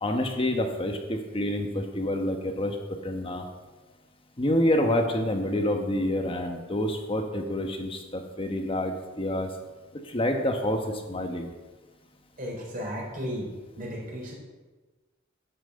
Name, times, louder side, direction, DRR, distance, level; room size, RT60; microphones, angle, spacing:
voice 1, 0.0-2.8 3.0-3.4 4.4-9.5 10.1-11.5, left 1 dB, 30° left, 3 dB, 1.1 m, -27 dB
voice 2, 12.4-13.5 13.8-14.4, equal, 45° right, -1 dB, 3.9 m, -34 dB
11.5 x 6.1 x 7.9 m, 1.3 s
head